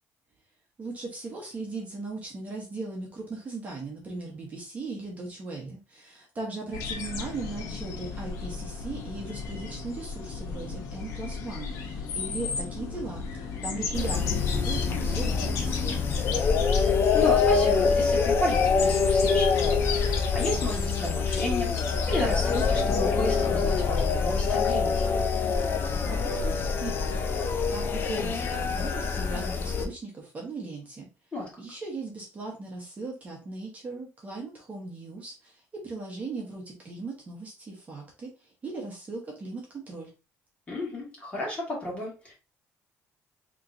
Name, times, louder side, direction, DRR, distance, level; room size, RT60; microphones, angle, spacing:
voice 1, 0.8-16.2 26.1-31.1 31.6-40.1, right 3 dB, 30° right, -2 dB, 1.1 m, -38 dB
sound 1, 6.7-23.9, left 5 dB, 75° left, 0.9 m, -35 dB
sound 2, 13.9-29.9, left 5 dB, 45° left, 0.6 m, -25 dB
voice 2, 16.7-21.7 22.1-25.0 31.3-31.6 40.7-42.3, left 1 dB, 20° left, -4 dB, 2.1 m, -33 dB
4.2 x 3.1 x 2.6 m, 0.31 s
cardioid pair, 135°, 5 cm